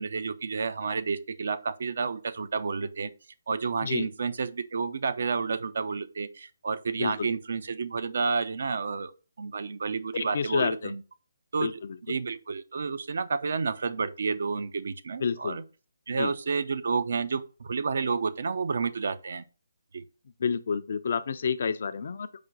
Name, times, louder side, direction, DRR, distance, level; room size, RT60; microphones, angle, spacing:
voice 1, 0.0-3.1 3.5-9.1 9.4-11.0 11.5-15.6 16.1-19.4 19.9-20.0, right 5 dB, 60° right, 0.4 m, -30 dB
voice 2, 10.1-10.9 11.6-11.7 15.2-15.6 16.2-16.3 20.4-22.3, left 6 dB, 55° left, 0.3 m, -29 dB
4.9 x 2.2 x 3.8 m
figure-of-eight pair, 145°, 0 cm